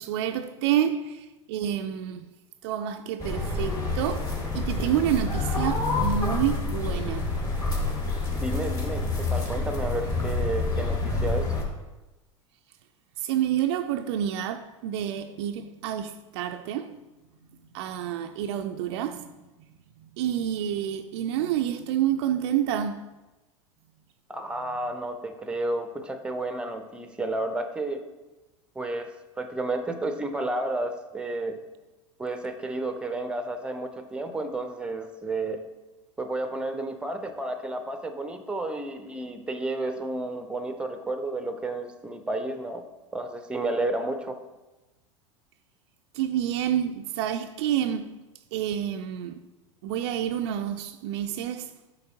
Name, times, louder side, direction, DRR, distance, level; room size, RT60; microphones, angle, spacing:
voice 1, 0.0-2.3 2.6-7.3 13.2-17.0 17.7-19.3 20.2-23.1 46.1-48.2 48.5-49.4 49.8-51.7, right 10 dB, 55° right, 0.4 m, -28 dB
sound 1, 3.2-11.6, left 3 dB, 20° left, 1.5 m, -28 dB
voice 2, 8.4-11.5 24.3-28.0 28.8-31.6 32.2-35.6 36.2-42.8 43.1-44.4, right 2 dB, 5° right, 0.6 m, -31 dB
6.7 x 5.2 x 2.8 m
hypercardioid pair, 85°, 16 cm